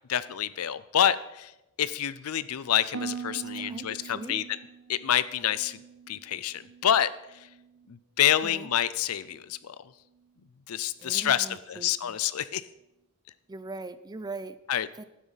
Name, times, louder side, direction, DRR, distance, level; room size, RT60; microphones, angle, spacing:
voice 1, 0.1-1.5 1.8-4.4 4.9-5.8 6.1-7.1 7.9-9.8 10.7-12.6 14.7-14.9, left 10 dB, 75° left, 16 dB, 0.5 m, -27 dB
Harp, 2.9-7.0 7.3-7.9 8.4-8.7, right 6 dB, 90° right, 0.5 m, -42 dB
voice 2, 3.3-4.4 8.4-8.7 11.0-12.2 13.5-14.6 15.0-15.1, right 3 dB, 20° right, 13 dB, 0.4 m, -41 dB
12.0 x 9.4 x 4.1 m, 0.93 s
head